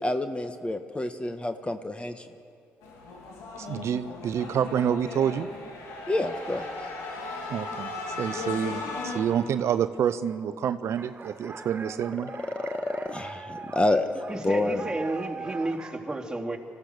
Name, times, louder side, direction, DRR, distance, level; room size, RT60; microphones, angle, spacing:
voice 1, 0.0-2.3 6.1-6.7 12.5-14.1 14.4-14.8, left 2 dB, 20° left, 8 dB, 1.4 m, -28 dB
sound 1, 2.8-9.2, left 3 dB, 75° left, 3.3 m, -37 dB
voice 2, 3.6-5.5 7.5-12.3, right 8 dB, 65° right, 12 dB, 0.6 m, -28 dB
sound 2, 11.0-16.0, right 4 dB, 35° right, 2.2 m, -41 dB
voice 3, 14.3-16.6, right 2 dB, 10° right, -1 dB, 3.2 m, -31 dB
25.5 x 15.0 x 6.7 m, 2.4 s
hypercardioid pair, 50°, 5 cm